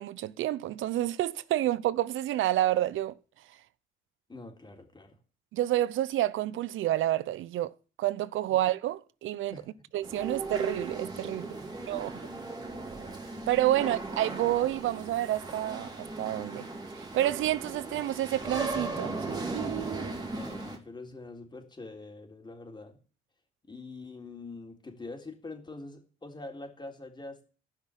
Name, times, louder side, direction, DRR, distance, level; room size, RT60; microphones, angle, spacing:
voice 1, 0.0-3.1 5.5-7.7 8.0-9.6 9.9-11.6 11.9-12.1 13.5-16.7 16.9-20.3, right 13 dB, 80° right, 0.8 m, -29 dB
voice 2, 4.3-5.2 8.5-8.6 9.5-9.9 11.5-12.5 13.8-13.9 20.3-23.0 23.7-27.5, left 3 dB, 20° left, 3.7 m, -45 dB
sound 1, 10.0-20.8, right 3 dB, 20° right, 3.6 m, -37 dB
15.0 x 6.0 x 9.9 m
cardioid pair, 90°, 20 cm